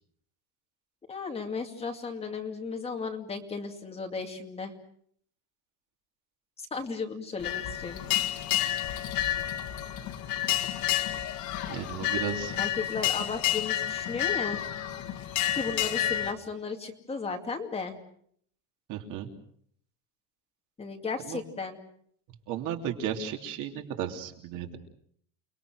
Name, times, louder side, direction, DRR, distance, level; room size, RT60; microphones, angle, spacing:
voice 1, 1.1-4.7 6.6-8.0 12.6-14.6 15.5-18.0 20.8-21.8, left 4 dB, 15° left, 3 dB, 2.4 m, -35 dB
sound 1, 7.4-16.3, left 12 dB, 55° left, 2.1 m, -30 dB
voice 2, 11.7-12.6 18.9-19.3 21.3-21.4 22.5-24.8, right 8 dB, 55° right, 4 dB, 3.3 m, -34 dB
29.5 x 21.5 x 6.4 m, 0.64 s
cardioid pair, 165°, 36 cm